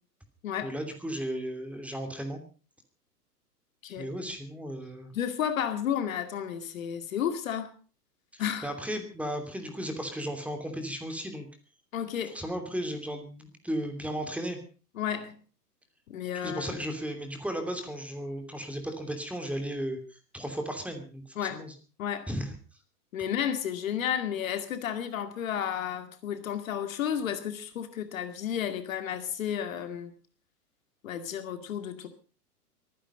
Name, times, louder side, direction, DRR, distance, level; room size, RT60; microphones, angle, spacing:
voice 1, 0.6-2.4 4.0-5.1 8.3-11.5 12.3-14.6 16.3-21.7 22.3-22.5, equal, 5° right, 5 dB, 2.8 m, -35 dB
voice 2, 5.1-7.7 8.4-8.7 11.9-12.3 15.0-15.4 16.1-16.8 21.4-21.6 22.0-22.3 23.1-30.1 31.0-32.1, left 9 dB, 55° left, 9 dB, 2.3 m, -32 dB
24.0 x 10.0 x 5.3 m, 0.38 s
figure-of-eight pair, 110°, 48 cm